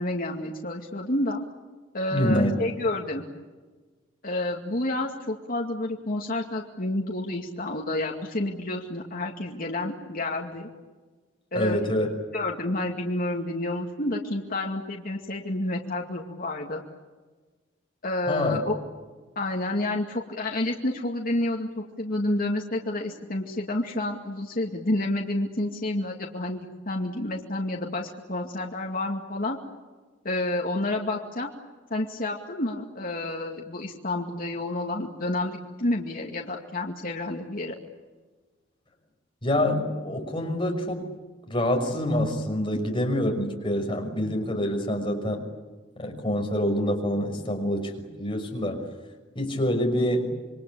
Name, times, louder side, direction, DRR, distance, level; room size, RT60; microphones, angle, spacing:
voice 1, 0.0-1.4 1.9-3.2 4.2-10.7 11.5-11.8 12.3-16.8 18.0-18.8 19.4-29.6 30.2-31.5 31.9-37.8, left 1 dB, 50° left, 0 dB, 2.3 m, -29 dB
voice 2, 2.1-2.5 11.5-12.1 18.3-18.6 39.4-41.1 41.5-45.4 46.0-48.8 49.4-50.4, left 1 dB, 25° left, 2 dB, 6.0 m, -26 dB
28.0 x 23.0 x 8.4 m, 1.3 s
head